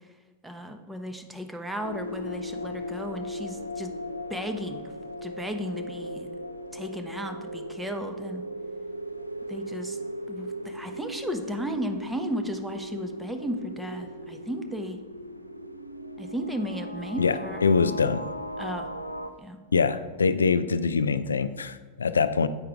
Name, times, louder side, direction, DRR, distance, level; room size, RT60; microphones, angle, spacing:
voice 1, 0.4-3.9 4.3-4.9 5.2-6.3 6.7-8.4 9.5-10.0 10.3-15.0 16.2-17.7 18.6-18.9 19.4-19.6, equal, 5° right, 6 dB, 0.7 m, -34 dB
sound 1, 1.8-19.3, equal, 90° right, 0.4 m, -37 dB
voice 2, 17.2-18.2 19.7-22.5, left 5 dB, 70° left, 13 dB, 0.3 m, -24 dB
7.9 x 5.6 x 3.6 m, 1.4 s
figure-of-eight pair, 90°, 0 cm